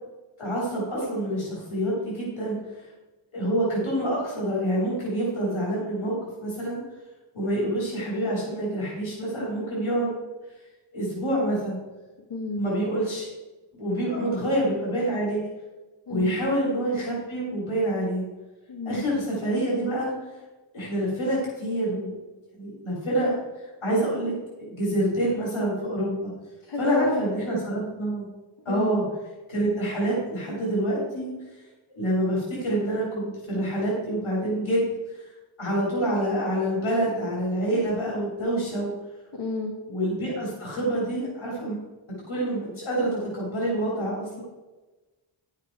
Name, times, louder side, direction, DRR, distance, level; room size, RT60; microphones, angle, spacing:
voice 1, 0.4-2.8 3.3-6.8 7.3-10.2 10.9-11.8 12.6-13.3 13.7-15.4 16.1-18.2 18.8-20.1 20.7-22.1 22.6-24.3 24.7-26.3 26.8-28.3 28.6-29.0 29.5-31.3 31.9-35.3 35.6-38.9 39.9-41.8 42.3-44.4, right 1 dB, 80° left, -5 dB, 3.4 m, -27 dB
voice 2, 12.3-12.7 14.2-14.5 16.1-16.3 18.7-19.0 26.6-27.3 28.7-29.0 39.3-39.8, left 3 dB, 60° left, 2 dB, 1.4 m, -31 dB
10.5 x 7.4 x 4.6 m, 1.2 s
cardioid pair, 65°, 48 cm